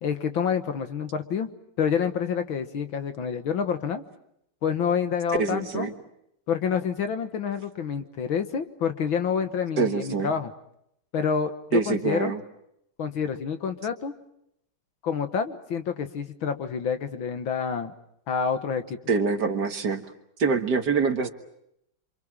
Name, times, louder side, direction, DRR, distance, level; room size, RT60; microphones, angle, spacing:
voice 1, 0.0-1.5 1.8-4.0 4.6-5.9 6.5-10.5 11.1-12.3 13.0-14.1 15.0-17.9 18.3-19.0, left 7 dB, 65° left, 9 dB, 2.2 m, -28 dB
voice 2, 5.4-5.9 9.8-10.3 11.7-12.4 19.1-20.0 20.4-21.3, right 4 dB, 50° right, 7 dB, 2.0 m, -25 dB
28.0 x 26.5 x 7.4 m, 0.77 s
omnidirectional pair, 2.4 m